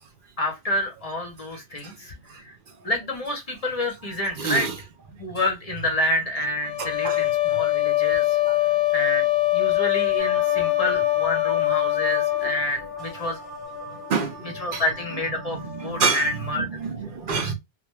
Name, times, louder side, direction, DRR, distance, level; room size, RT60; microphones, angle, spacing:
voice 1, 0.4-2.6 2.8-4.7 5.2-8.4 8.9-9.3 9.5-13.4 14.5-16.7 17.3-17.5, left 1 dB, 40° left, 0.7 m, -28 dB
voice 2, 4.4-4.7 6.8-7.2 8.5-8.6 14.1-14.8 15.5-16.3 16.5-17.5, right 5 dB, 60° right, 0.7 m, -27 dB
sound 1, 6.6-12.7, left 17 dB, 85° left, 0.8 m, -23 dB
sound 2, 10.2-16.5, left 2 dB, ahead, 0.6 m, -37 dB
2.5 x 2.2 x 2.9 m
omnidirectional pair, 1.0 m